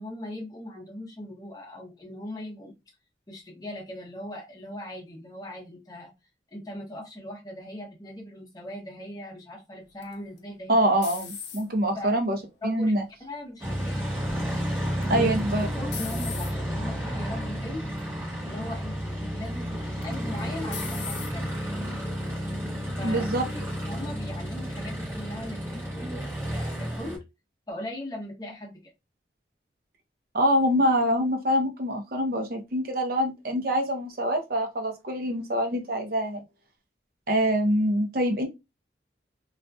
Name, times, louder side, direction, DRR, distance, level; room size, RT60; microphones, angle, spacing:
voice 1, 0.0-2.7 3.3-6.1 6.5-10.8 11.9-12.1 12.6-12.9 13.2-14.0 15.1-15.4 15.7-17.9 18.4-21.6 23.0-26.2 26.5-27.2 27.7-28.8, left 1 dB, 20° left, 0.7 m, -39 dB
sound 1, 10.0-11.9 12.5-13.0 15.0-15.4 15.9-16.5 17.3-17.6 18.0-18.1 20.0-20.4 20.7-21.3, left 7 dB, 65° left, 0.6 m, -38 dB
voice 2, 10.7-12.4 12.6-13.0 15.1-15.7 23.0-23.5 30.3-36.4 37.3-38.5, equal, 50° right, 0.7 m, -25 dB
Aircraft, 13.6-27.2, equal, 15° right, 1.2 m, -31 dB
2.7 x 2.4 x 2.2 m
head